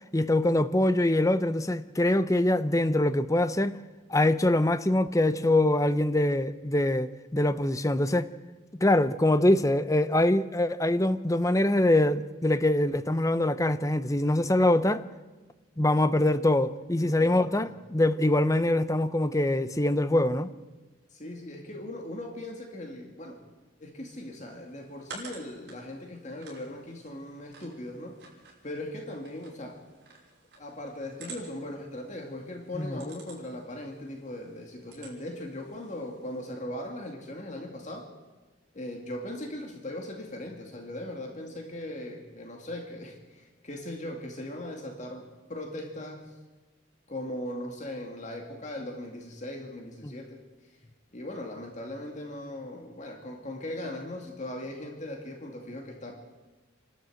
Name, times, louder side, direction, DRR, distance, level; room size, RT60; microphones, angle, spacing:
voice 1, 0.1-3.8 4.1-8.3 8.8-15.0 15.8-20.5 32.7-33.0 50.0-50.1, left 1 dB, 15° left, 0.7 m, -24 dB
voice 2, 17.0-17.8 21.1-23.4 23.8-28.2 28.6-29.8 30.6-38.1 38.7-46.3 47.1-50.4 51.1-56.1, left 1 dB, 40° left, 2.3 m, -39 dB
sound 1, 24.0-36.5, right 3 dB, 55° right, 6.1 m, -51 dB
27.5 x 12.5 x 7.9 m
head